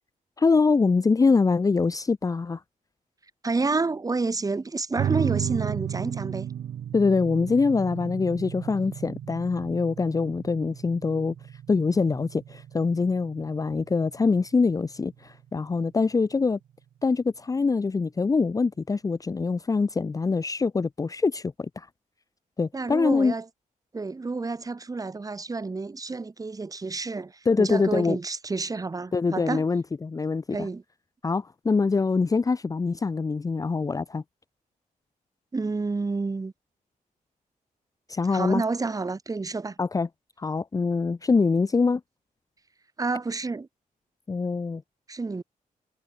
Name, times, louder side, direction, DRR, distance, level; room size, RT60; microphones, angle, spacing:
voice 1, 0.4-2.6 6.9-11.3 11.7-16.6 17.0-21.9 22.6-23.3 27.5-28.2 29.1-30.7 31.2-34.2 38.1-38.6 39.8-40.1 40.4-42.0 44.3-44.8, left 4 dB, 25° left, 0.9 m, -24 dB
voice 2, 3.4-6.5 22.7-23.5 23.9-29.6 30.5-30.8 35.5-36.5 38.3-39.8 43.0-43.7 45.1-45.4, right 3 dB, 25° right, 6.9 m, -29 dB
sound 1, 5.0-16.0, right 10 dB, 75° right, 1.9 m, -34 dB
wide cardioid pair, 145°, 14 cm